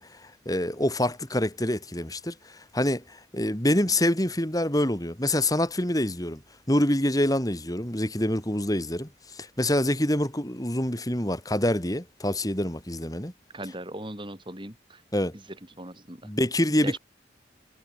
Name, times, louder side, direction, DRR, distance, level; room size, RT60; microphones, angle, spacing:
voice 1, 0.0-6.4 6.7-13.3 15.1-15.3 16.2-17.0, left 1 dB, 20° left, 4.4 m, -26 dB
voice 2, 13.5-15.0 15.8-16.3 16.8-17.0, right 1 dB, 25° right, 7.0 m, -38 dB
head